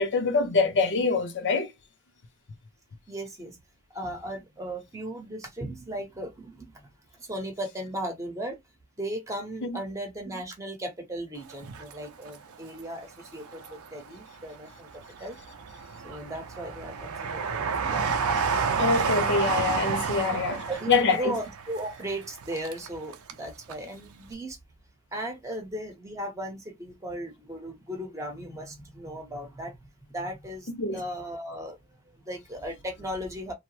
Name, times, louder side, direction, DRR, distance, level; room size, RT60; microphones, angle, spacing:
voice 1, 0.0-1.7 9.6-9.8 18.8-20.6 20.9-21.4 30.8-31.0, left 4 dB, 55° left, 0.5 m, -25 dB
voice 2, 3.1-3.6 3.9-6.9 7.1-8.6 9.0-15.4 16.0-18.1 20.3-24.6 25.1-33.5, right 1 dB, 15° right, 0.8 m, -37 dB
Train, 11.5-12.7 13.2-14.2 14.7-23.4 23.7-23.8, right 5 dB, 85° right, 0.5 m, -30 dB
3.1 x 2.0 x 3.0 m
head